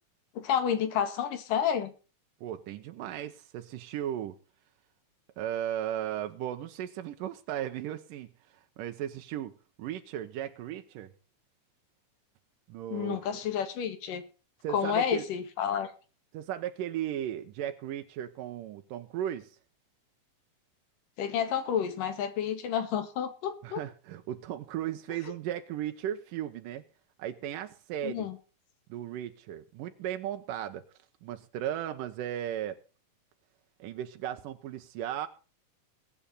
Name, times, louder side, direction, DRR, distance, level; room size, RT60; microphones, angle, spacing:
voice 1, 0.4-1.9 12.9-14.2 14.7-15.9 21.2-23.8 28.0-28.4, left 8 dB, 85° left, 3.5 m, -30 dB
voice 2, 2.4-4.4 5.4-9.5 9.8-11.1 12.7-13.4 14.6-15.3 16.3-19.6 23.6-26.8 27.2-28.3 28.9-30.8 31.2-32.8 33.8-35.3, right 11 dB, 90° right, 2.6 m, -36 dB
22.0 x 8.7 x 4.1 m
omnidirectional pair, 3.7 m